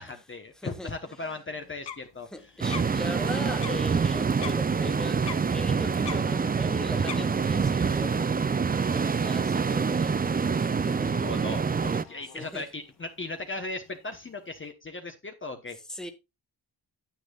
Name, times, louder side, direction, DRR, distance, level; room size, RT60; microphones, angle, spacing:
voice 1, 0.0-2.5 11.1-15.8, left 2 dB, 25° left, 1.1 m, -37 dB
voice 2, 0.6-0.9 1.2-1.3 2.3-10.2 10.6-11.3 11.6-11.8 12.0-12.6 15.9-16.1, left 1 dB, ahead, 1.3 m, -40 dB
sound 1, 1.6-14.7, left 8 dB, 70° left, 1.3 m, -47 dB
sound 2, 2.6-12.0, right 5 dB, 20° right, 0.4 m, -26 dB
10.0 x 9.5 x 2.4 m
wide cardioid pair, 160°, 43 cm